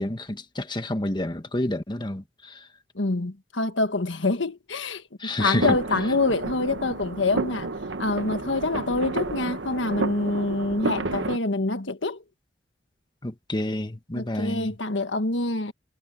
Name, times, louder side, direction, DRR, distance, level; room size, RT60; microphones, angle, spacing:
voice 1, 0.0-2.7 5.2-5.8 13.2-14.8, left 1 dB, 25° left, 1.5 m, -29 dB
voice 2, 2.9-5.0 5.4-7.7 8.0-12.2 14.1-15.7, left 2 dB, 85° left, 1.5 m, -26 dB
sound 1, 5.6-11.4, right 2 dB, 80° right, 1.3 m, -30 dB
head